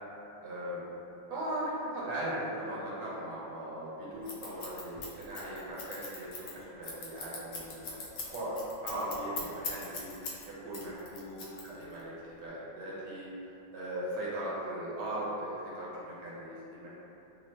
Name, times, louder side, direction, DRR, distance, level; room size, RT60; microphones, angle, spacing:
voice 1, 0.4-0.8 1.3-8.5 8.8-12.1 12.4-13.3 13.7-16.9, right 1 dB, 70° right, -7 dB, 1.3 m, -38 dB
Scissors, 4.3-10.4 10.7-12.0, left 4 dB, 70° left, 1.0 m, -40 dB
3.1 x 2.0 x 3.1 m, 2.9 s
omnidirectional pair, 2.0 m